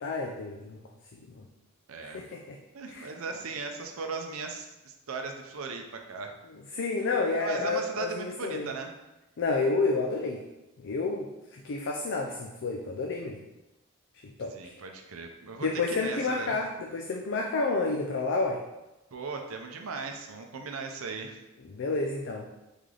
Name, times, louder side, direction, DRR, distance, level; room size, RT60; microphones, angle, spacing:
voice 1, 0.0-0.8 2.0-2.6 2.9-3.1 6.7-8.7 9.4-10.4 10.8-13.4 14.4-14.7 15.6-18.6 21.7-22.5, left 3 dB, 60° left, 2 dB, 0.4 m, -30 dB
voice 2, 1.9-2.2 2.7-6.3 7.4-8.9 14.5-16.6 19.1-21.4, right 4 dB, 80° right, 4 dB, 0.6 m, -38 dB
4.0 x 3.3 x 3.8 m, 0.99 s
head